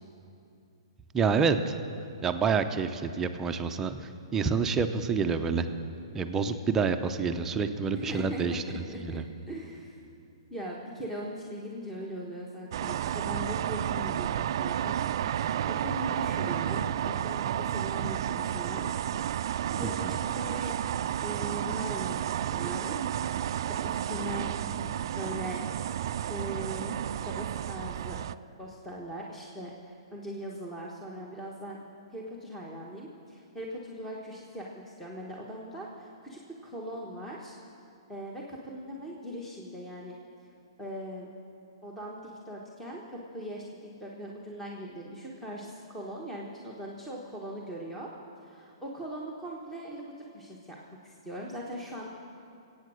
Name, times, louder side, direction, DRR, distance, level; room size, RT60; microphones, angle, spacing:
voice 1, 1.1-1.8 2.2-5.7 6.1-8.6 8.9-9.2 19.8-20.2, right 5 dB, 15° right, 7 dB, 0.6 m, -28 dB
voice 2, 7.9-8.6 8.9-9.2 9.5-10.0 10.5-18.9 19.8-20.7 21.2-24.6 25.2-25.6 26.3-28.2 28.6-31.8 32.1-37.6 38.1-40.2 40.8-41.3 41.8-43.6 44.0-48.1 48.4-50.8 51.0-52.1, equal, 5° left, -3 dB, 1.3 m, -40 dB
sound 1, 12.7-28.4, right 10 dB, 55° right, 0.4 m, -31 dB
22.0 x 8.7 x 6.4 m, 2.5 s
hypercardioid pair, 150°, 3 cm